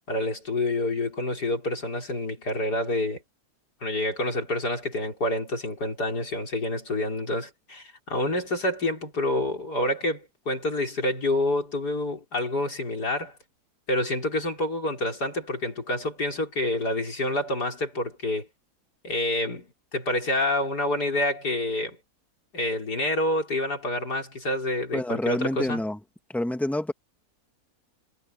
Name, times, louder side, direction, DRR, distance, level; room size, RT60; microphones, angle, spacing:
voice 1, 0.1-3.2 3.8-13.3 13.9-18.5 19.0-22.0 22.5-25.8, left 1 dB, 85° left, 5.1 m, -28 dB
voice 2, 24.9-26.0 26.3-26.9, left 1 dB, ahead, 1.7 m, -27 dB
omnidirectional pair, 1.7 m